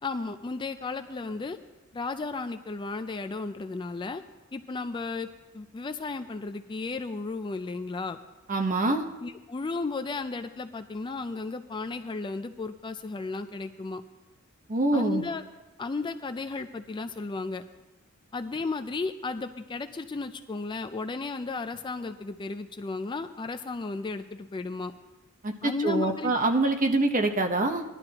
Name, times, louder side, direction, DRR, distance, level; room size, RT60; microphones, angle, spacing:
voice 1, 0.0-1.6 1.9-4.2 4.5-8.2 8.9-9.0 9.2-14.0 14.9-15.4 15.8-17.6 18.3-24.9 25.6-26.3, left 3 dB, 20° left, 9 dB, 0.4 m, -34 dB
voice 2, 8.5-9.0 14.7-15.2 25.4-27.8, right 2 dB, 40° right, 4 dB, 0.9 m, -25 dB
18.5 x 11.5 x 2.9 m, 1.1 s
head